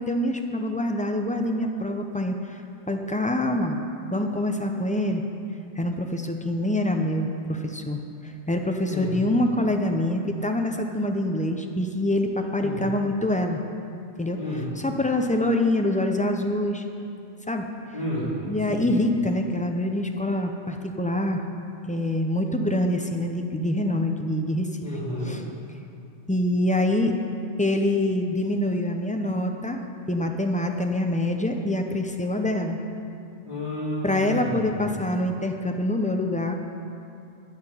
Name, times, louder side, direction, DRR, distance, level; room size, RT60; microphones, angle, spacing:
voice 1, 0.0-2.4 2.9-3.8 4.1-5.2 5.8-13.6 14.2-16.8 17.5-17.7 18.5-21.4 21.8-24.7 25.2-25.4 26.3-27.1 27.6-29.8 30.1-32.8 34.0-36.5, left 1 dB, 10° left, 3 dB, 0.4 m, -25 dB
voice 2, 14.3-14.6 17.9-18.3 18.7-18.9 24.8-25.3 33.4-34.7, left 1 dB, 30° left, -14 dB, 3.5 m, -31 dB
11.5 x 5.9 x 9.2 m, 2.6 s
omnidirectional pair, 1.3 m